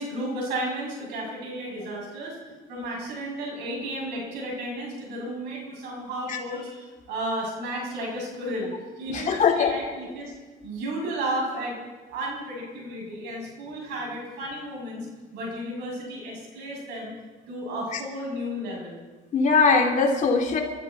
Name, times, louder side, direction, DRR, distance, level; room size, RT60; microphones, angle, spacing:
voice 1, 0.0-2.4 2.7-10.3 10.6-11.7 12.1-15.1 15.3-17.1 17.5-19.0, right 1 dB, 85° right, -2 dB, 6.7 m, -33 dB
voice 2, 9.1-9.7 19.3-20.6, left 5 dB, 50° left, 1 dB, 3.0 m, -21 dB
25.0 x 13.5 x 4.1 m, 1.3 s
cardioid pair, 110°, 17 cm